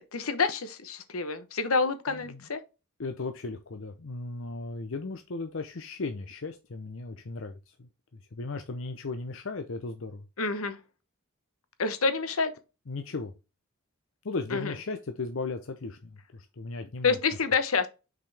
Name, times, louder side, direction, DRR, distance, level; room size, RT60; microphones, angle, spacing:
voice 1, 0.1-2.6 10.4-10.8 11.8-12.5 14.5-14.7 17.0-17.9, left 4 dB, 80° left, 1.0 m, -28 dB
voice 2, 2.1-2.5 3.0-7.9 8.3-10.3 12.9-13.3 14.2-17.2, left 3 dB, 65° left, 0.7 m, -36 dB
6.0 x 5.0 x 3.4 m
head